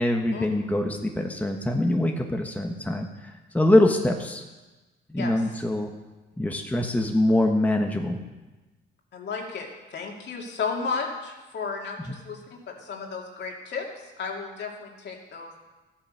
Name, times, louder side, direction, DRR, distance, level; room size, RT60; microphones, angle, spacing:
voice 1, 0.0-3.1 3.5-4.4 5.1-5.9 6.4-8.3, left 1 dB, 5° left, 3 dB, 1.3 m, -23 dB
voice 2, 9.1-12.4 12.7-13.9 14.2-15.6, left 5 dB, 60° left, 1 dB, 2.6 m, -33 dB
13.5 x 8.7 x 6.4 m, 1.2 s
cardioid pair, 90°, 20 cm